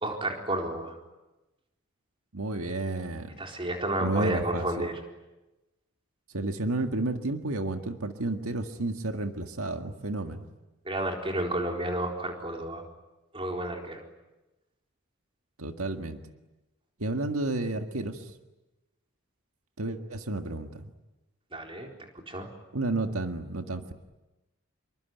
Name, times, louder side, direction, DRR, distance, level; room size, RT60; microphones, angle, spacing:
voice 1, 0.0-1.0 3.4-4.9 10.9-12.8 13.3-14.0 21.5-21.9 22.3-22.5, right 1 dB, 25° right, 2 dB, 4.2 m, -31 dB
voice 2, 2.3-3.4 4.0-4.9 6.3-10.4 15.6-16.2 17.0-18.3 19.8-20.8 22.7-23.9, right 2 dB, 90° right, 6 dB, 1.8 m, -31 dB
27.5 x 23.5 x 9.3 m, 1.0 s
head